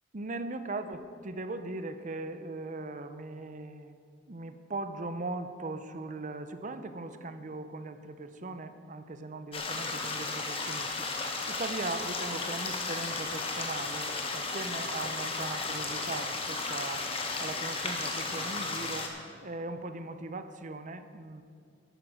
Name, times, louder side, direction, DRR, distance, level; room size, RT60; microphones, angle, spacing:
voice 1, 0.1-4.0 4.3-17.1 17.4-19.1 19.4-21.4, right 2 dB, 45° right, 10 dB, 0.7 m, -39 dB
sound 1, 9.5-19.1, left 3 dB, 30° left, 1.3 m, -34 dB
12.0 x 9.4 x 6.2 m, 2.2 s
head